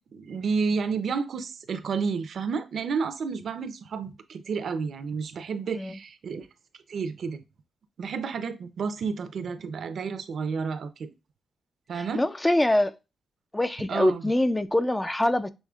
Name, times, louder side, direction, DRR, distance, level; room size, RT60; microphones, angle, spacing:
voice 1, 0.1-6.5 6.9-7.4 8.0-11.1 11.9-12.2 13.9-14.2, right 5 dB, 65° right, 0.6 m, -31 dB
voice 2, 11.9-13.0 13.5-15.5, left 1 dB, 10° left, 0.3 m, -24 dB
6.3 x 3.2 x 2.3 m
cardioid pair, 110°, 0 cm